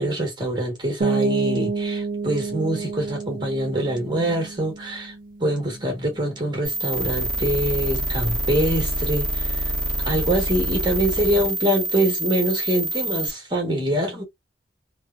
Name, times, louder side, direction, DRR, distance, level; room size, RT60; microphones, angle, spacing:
voice 1, 0.0-5.1 5.4-9.7 10.0-14.2, right 1 dB, 25° right, 1.4 m, -24 dB
sound 1, 1.0-6.6, right 4 dB, 50° right, 0.6 m, -29 dB
sound 2, 6.6-13.3, right 1 dB, 5° left, 1.0 m, -26 dB
3.3 x 2.1 x 2.4 m
head